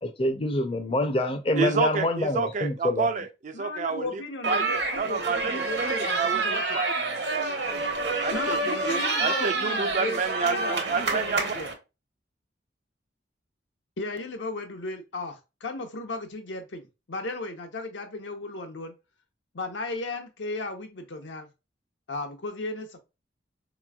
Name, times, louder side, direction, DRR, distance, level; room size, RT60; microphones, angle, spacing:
voice 1, 0.0-3.1, left 1 dB, 30° left, 0.5 m, -26 dB
voice 2, 1.6-4.1 4.5-4.6 5.0-7.5 8.2-11.5, right 4 dB, 40° right, 0.4 m, -29 dB
voice 3, 3.5-6.8 8.3-11.7 14.0-18.9 19.5-21.5 22.1-23.0, left 2 dB, 80° left, 0.8 m, -35 dB
sound 1, 4.4-11.7, right 3 dB, 65° right, 1.0 m, -28 dB
4.1 x 3.0 x 2.3 m
head